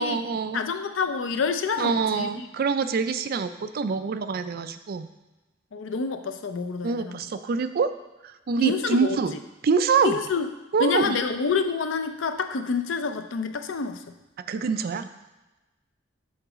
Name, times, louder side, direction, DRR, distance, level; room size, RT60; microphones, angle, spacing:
voice 1, 0.0-0.6 1.8-5.1 6.8-7.9 8.2-9.4 9.6-10.2 10.7-11.2 14.5-15.1, right 5 dB, 50° right, 11 dB, 0.4 m, -25 dB
voice 2, 0.5-2.5 5.7-7.2 8.6-9.4 10.0-10.5 10.8-14.0, left 5 dB, 75° left, 9 dB, 0.5 m, -27 dB
7.1 x 3.9 x 4.9 m, 1.1 s
head